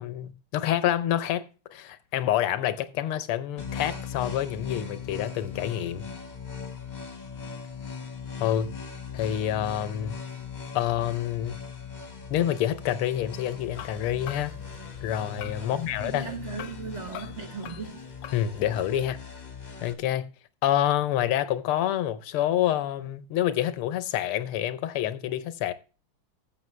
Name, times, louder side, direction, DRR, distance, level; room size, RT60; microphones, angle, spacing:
voice 1, 0.0-1.5 1.7-6.1 8.4-8.7 9.1-10.1 10.7-11.6 12.3-14.6 15.0-16.3 18.3-19.2 19.8-20.3 20.6-25.7, left 11 dB, 85° left, 1.7 m, -27 dB
sound 1, 3.6-19.9, left 6 dB, 25° left, 1.1 m, -39 dB
sound 2, 13.7-18.8, left 10 dB, 70° left, 1.2 m, -46 dB
voice 2, 15.6-18.1, right 5 dB, 40° right, 1.1 m, -38 dB
14.5 x 6.9 x 3.2 m
omnidirectional pair, 2.3 m